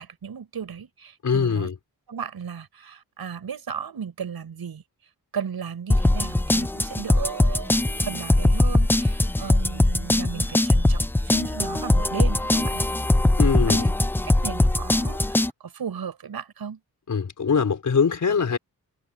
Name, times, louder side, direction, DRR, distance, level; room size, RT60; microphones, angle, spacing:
voice 1, 0.0-1.7 2.1-4.8 5.3-12.8 13.7-13.9 14.2-16.8, right 7 dB, 75° right, 7.9 m, -35 dB
voice 2, 1.2-1.7 13.4-13.9 17.1-18.6, left 6 dB, 50° left, 5.4 m, -22 dB
sound 1, 5.9-15.5, left 1 dB, 5° left, 0.4 m, -21 dB
wide cardioid pair, 165°, 37 cm